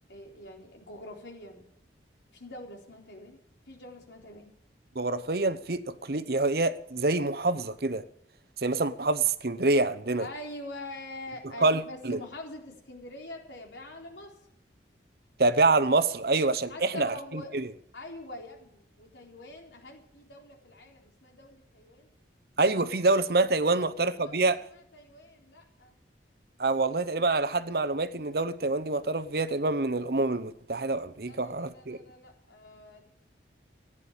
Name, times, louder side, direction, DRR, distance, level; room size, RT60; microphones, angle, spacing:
voice 1, 0.1-1.6 2.3-3.4 3.7-4.5 10.2-14.3 16.7-17.6 17.9-22.1 23.6-26.0 31.2-33.1, left 1 dB, 80° left, 4.1 m, -45 dB
voice 2, 4.9-8.0 8.6-10.3 11.6-12.2 15.4-17.1 17.5-17.7 22.6-24.6 26.6-32.0, right 3 dB, 55° right, 0.9 m, -26 dB
15.5 x 10.0 x 8.9 m
head